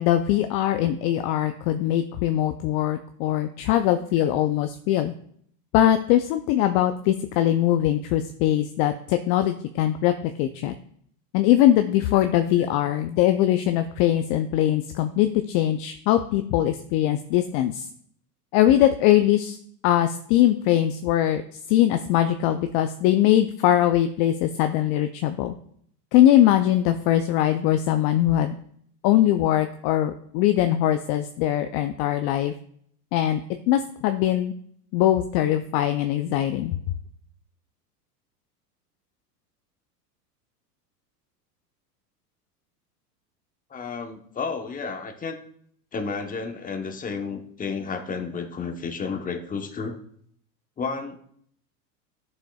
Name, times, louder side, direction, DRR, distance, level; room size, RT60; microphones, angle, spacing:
voice 1, 0.0-5.1 5.7-10.7 11.3-17.9 18.5-19.6 19.8-21.4 21.7-25.5 26.1-28.5 29.0-32.5 33.1-33.4 33.7-34.5 34.9-36.8, left 12 dB, 45° left, 8 dB, 0.5 m, -21 dB
voice 2, 43.7-45.4 45.9-50.0 50.8-51.2, left 5 dB, 15° left, 5 dB, 1.0 m, -31 dB
11.0 x 6.4 x 2.3 m, 0.64 s
hypercardioid pair, 95°, 48 cm